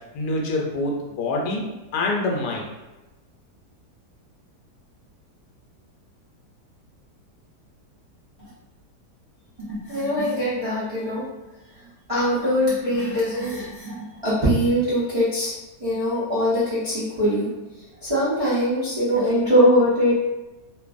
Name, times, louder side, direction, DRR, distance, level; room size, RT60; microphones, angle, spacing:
voice 1, 0.1-1.6 1.9-2.7, left 2 dB, 80° left, -1 dB, 1.1 m, -25 dB
voice 2, 9.7-11.2 12.1-15.5 15.8-17.5 17.8-20.1, equal, 40° right, -12 dB, 0.4 m, -22 dB
2.5 x 2.5 x 2.4 m, 1.1 s
omnidirectional pair, 1.8 m